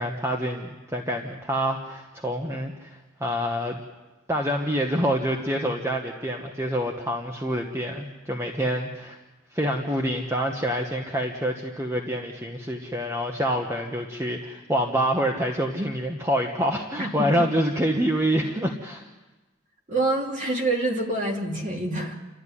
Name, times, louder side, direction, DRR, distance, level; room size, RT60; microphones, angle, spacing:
voice 1, 0.0-3.8 4.3-9.2 9.5-19.0, equal, 15° right, 2 dB, 1.2 m, -27 dB
voice 2, 19.9-22.1, right 2 dB, 35° right, 1 dB, 2.8 m, -26 dB
29.0 x 13.0 x 9.9 m, 1.2 s
head